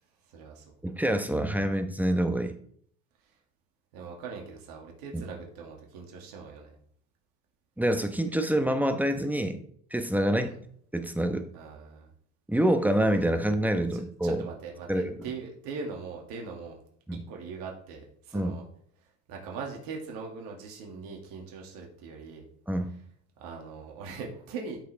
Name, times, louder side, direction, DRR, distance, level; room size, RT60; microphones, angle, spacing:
voice 1, 0.3-0.6 3.9-6.7 10.5-10.6 11.5-12.1 13.9-16.8 17.3-18.6 19.3-22.4 23.4-24.8, right 5 dB, 70° right, 0 dB, 2.3 m, -41 dB
voice 2, 0.8-2.6 5.1-5.2 7.8-9.6 9.9-10.6 10.9-11.4 12.5-14.5 14.9-15.3 17.1-17.2 18.3-18.6 22.7-22.9, right 1 dB, 5° right, 7 dB, 1.2 m, -26 dB
13.0 x 5.0 x 3.4 m, 0.64 s
hypercardioid pair, 75°, 37 cm